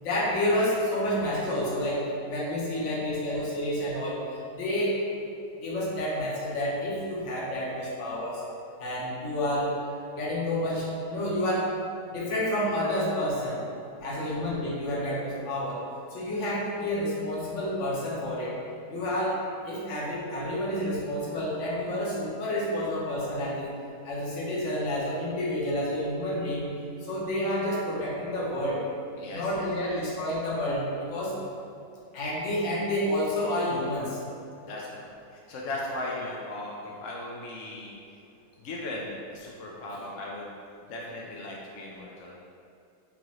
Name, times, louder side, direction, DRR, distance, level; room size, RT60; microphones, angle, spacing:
voice 1, 0.0-4.2 4.5-5.0 5.6-8.4 8.8-9.7 10.2-11.7 12.1-13.6 14.0-15.8 16.1-18.5 18.9-19.4 19.6-23.7 24.0-26.7 27.0-28.8 29.3-31.3 32.1-34.2 39.9-40.1, left 1 dB, 55° left, -5 dB, 1.0 m, -29 dB
voice 2, 14.0-14.3 29.2-30.0 34.6-37.9 38.6-40.5 40.9-42.3, left 2 dB, 75° left, -3 dB, 0.7 m, -38 dB
5.7 x 2.4 x 3.0 m, 2.5 s
omnidirectional pair, 1.8 m